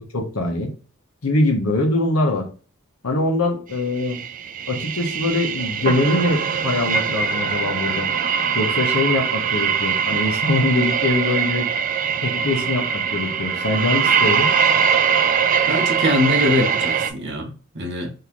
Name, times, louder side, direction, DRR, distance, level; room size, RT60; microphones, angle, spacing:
voice 1, 0.1-0.7 1.2-2.5 3.0-4.2 4.7-8.1 8.5-11.7 12.2-14.5, left 2 dB, 90° left, 1.0 m, -22 dB
sound 1, 4.0-17.1, right 7 dB, 40° right, 0.3 m, -22 dB
voice 2, 15.7-18.1, left 1 dB, 55° right, 0.9 m, -23 dB
3.8 x 2.8 x 2.9 m
head